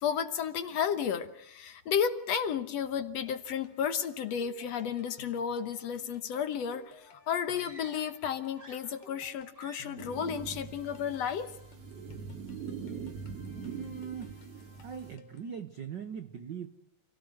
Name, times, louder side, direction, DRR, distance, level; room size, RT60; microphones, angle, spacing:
voice 1, 0.0-11.6, left 8 dB, 65° left, 10 dB, 2.1 m, -33 dB
sound 1, 3.3-15.6, left 2 dB, 80° left, 3.6 m, -56 dB
sound 2, 7.5-8.2 8.5-9.3 9.5-10.1, right 2 dB, 30° right, 0.9 m, -53 dB
sound 3, 10.0-15.2, right 6 dB, 50° right, 3.4 m, -42 dB
voice 2, 13.6-14.5 14.8-16.7, right 7 dB, 70° right, 10 dB, 1.0 m, -41 dB
27.5 x 17.5 x 7.7 m, 0.81 s
omnidirectional pair, 3.6 m